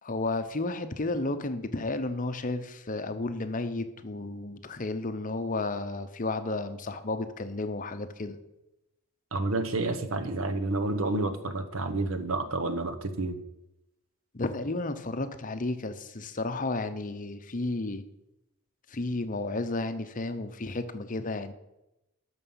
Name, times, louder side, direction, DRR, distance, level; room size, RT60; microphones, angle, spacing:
voice 1, 0.0-8.4 14.3-18.0 18.9-21.5, left 2 dB, 40° left, 10 dB, 0.8 m, -32 dB
voice 2, 9.3-13.4, right 2 dB, 70° right, 8 dB, 1.0 m, -29 dB
12.5 x 6.1 x 5.6 m, 0.92 s
head